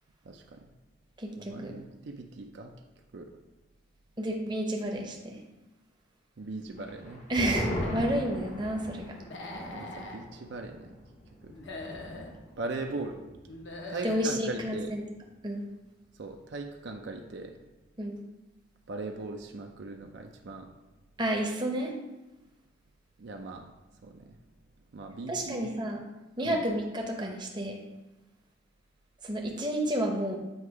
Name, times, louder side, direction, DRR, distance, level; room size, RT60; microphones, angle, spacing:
voice 1, 0.3-0.6 1.5-2.7 3.1-3.3 6.4-7.2 9.7-10.9 11.4-11.5 12.6-13.2 13.9-14.9 16.2-17.5 18.9-20.7 23.2-23.7 24.0-24.4 24.9-25.6 26.4-26.6, right 3 dB, 65° right, 3 dB, 0.5 m, -39 dB
voice 2, 1.2-1.7 4.2-5.4 7.3-9.2 14.0-15.0 15.4-15.6 18.0-18.2 21.2-21.9 25.3-26.0 26.4-27.8 29.2-30.4, right 1 dB, 25° right, 1 dB, 0.7 m, -30 dB
sound 1, 6.8-13.7 14.0-14.1 14.5-15.0, left 1 dB, 40° left, 0.8 m, -39 dB
Human voice / Animal, 7.3-8.1 9.2-10.2 11.5-12.3 13.5-14.3, left 2 dB, 70° left, 0.8 m, -42 dB
7.9 x 2.9 x 4.6 m, 1.0 s
head